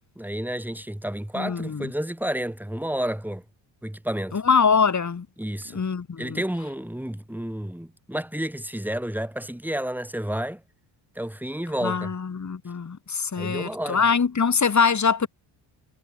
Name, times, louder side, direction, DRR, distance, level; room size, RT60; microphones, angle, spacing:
voice 1, 0.2-3.4 3.8-4.4 5.4-5.8 6.2-10.6 11.2-12.1 13.4-14.0, right 1 dB, 5° right, 7.6 m, -30 dB
voice 2, 1.4-1.9 4.3-5.3 5.7-6.4 11.8-15.3, left 5 dB, 35° left, 5.7 m, -23 dB
supercardioid pair, 75°, 49 cm